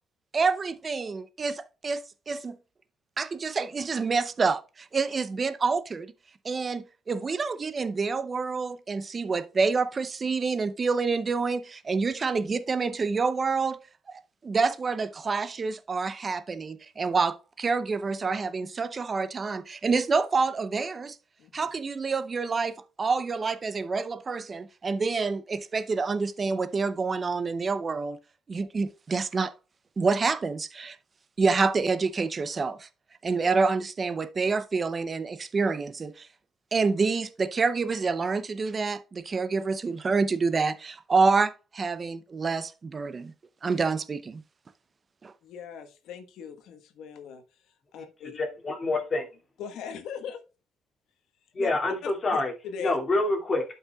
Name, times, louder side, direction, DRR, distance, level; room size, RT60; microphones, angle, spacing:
voice 1, 0.3-2.6 3.2-6.1 6.4-13.8 14.1-21.2 21.5-28.2 28.5-29.5 30.0-31.0 31.4-32.9 33.2-36.3 36.7-43.3 43.6-44.4 45.2-45.3, right 4 dB, 25° right, 0.7 m, -27 dB
voice 2, 21.4-21.7 45.4-48.4 49.6-50.4 51.6-51.7 52.0-53.0, left 7 dB, 75° left, 1.3 m, -40 dB
voice 3, 48.2-49.3 51.5-52.5 52.8-53.6, left 2 dB, 30° left, 2.3 m, -27 dB
12.0 x 5.6 x 2.3 m
cardioid pair, 145°, 0 cm